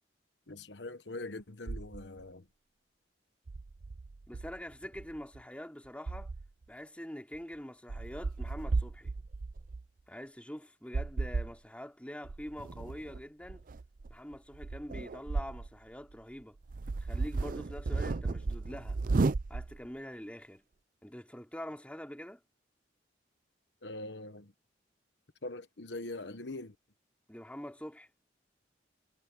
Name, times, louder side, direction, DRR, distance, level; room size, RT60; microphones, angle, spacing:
voice 1, 0.5-2.5 23.8-24.5 25.4-26.8, left 2 dB, 70° left, 1.2 m, -42 dB
sound 1, 1.7-2.2 3.5-5.4 6.1-6.6 7.3-7.4 7.9-9.8 10.9-11.5 12.2-15.7 16.1-16.2 16.6-19.9, right 3 dB, 50° right, 0.5 m, -35 dB
voice 2, 4.3-6.3 6.7-9.1 10.1-13.6 14.1-16.6 17.0-19.0 19.5-20.6 21.0-22.4 27.3-28.1, equal, 5° left, 2.9 m, -45 dB
head